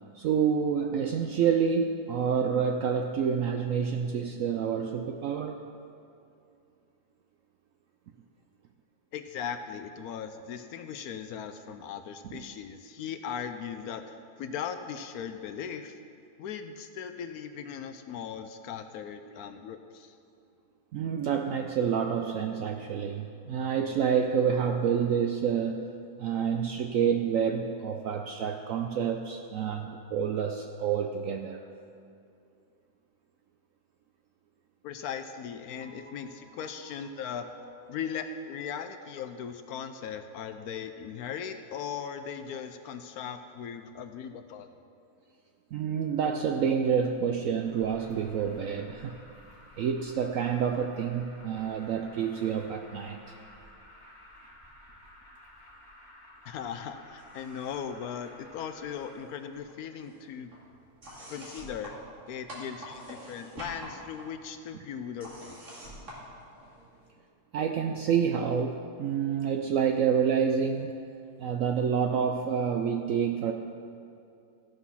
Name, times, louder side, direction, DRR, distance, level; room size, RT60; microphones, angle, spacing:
voice 1, 0.1-5.6 20.9-25.9 26.2-31.6 45.7-49.2 49.8-53.2 67.5-70.9 71.4-73.5, right 7 dB, 80° right, 4 dB, 0.7 m, -28 dB
voice 2, 9.1-16.0 16.4-20.2 34.8-37.5 37.9-44.7 56.5-60.5 61.3-62.0 62.3-65.6, left 7 dB, 70° left, 8 dB, 0.9 m, -38 dB
sound 1, 35.8-40.2, left 2 dB, 35° left, 0.5 m, -54 dB
Alarm, 47.6-59.1, left 1 dB, 15° left, 1.8 m, -53 dB
sound 2, 57.2-58.0 58.2-59.3 59.5-67.1, equal, 45° right, 2.5 m, -47 dB
14.5 x 6.1 x 5.6 m, 2.5 s
omnidirectional pair, 1.9 m